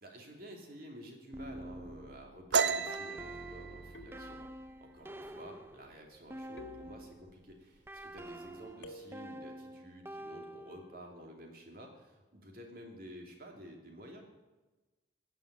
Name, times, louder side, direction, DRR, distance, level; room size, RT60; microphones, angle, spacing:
voice 1, 0.0-14.2, equal, 50° right, 1 dB, 2.7 m, -51 dB
sound 1, 1.3-7.3 7.9-11.1, right 1 dB, 15° right, 0.5 m, -47 dB
sound 2, 2.5-6.0 6.3-6.6 7.0-7.5 7.8-8.5, right 5 dB, 70° right, 0.6 m, -34 dB
sound 3, 3.9-4.9 6.6-7.5 8.8-9.6, left 2 dB, 90° left, 1.8 m, -53 dB
15.5 x 7.3 x 10.0 m, 1.2 s
head